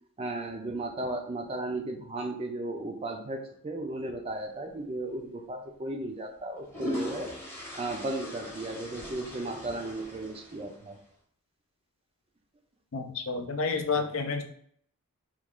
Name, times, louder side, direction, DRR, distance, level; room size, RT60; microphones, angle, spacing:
voice 1, 0.2-7.3 7.8-11.0, right 2 dB, 25° right, 4 dB, 0.4 m, -35 dB
sound 1, 5.0-5.2 6.4-11.0, equal, 10° left, 0.8 m, -40 dB
voice 2, 12.9-14.4, left 4 dB, 60° left, 6 dB, 0.5 m, -30 dB
3.0 x 2.3 x 3.5 m, 0.64 s
head